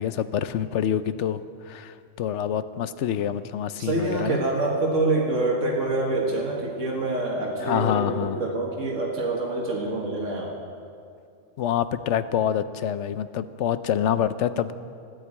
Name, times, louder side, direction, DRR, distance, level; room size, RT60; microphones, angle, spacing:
voice 1, 0.0-1.4 1.6-4.4 7.6-8.4 11.6-14.7, left 9 dB, 75° left, 13 dB, 0.9 m, -26 dB
voice 2, 3.8-10.5, right 2 dB, 85° right, -1 dB, 1.9 m, -26 dB
13.5 x 10.0 x 8.6 m, 2.4 s
omnidirectional pair, 1.2 m